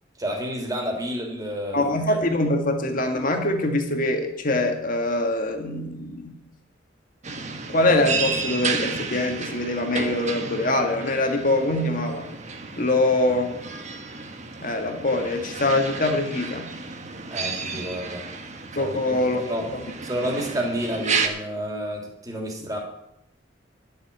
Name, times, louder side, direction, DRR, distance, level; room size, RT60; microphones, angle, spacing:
voice 1, 0.2-2.2 13.3-13.4 17.3-18.2 18.7-19.7 20.0-22.8, equal, 20° right, 0 dB, 3.2 m, -30 dB
voice 2, 1.7-6.4 7.7-12.2 12.8-13.5 14.6-16.7 18.8-19.4 19.7-19.8, left 2 dB, 50° left, 4 dB, 1.9 m, -23 dB
sound 1, 7.2-21.3, right 4 dB, 40° right, 1.3 m, -32 dB
11.5 x 7.0 x 8.8 m, 0.82 s
head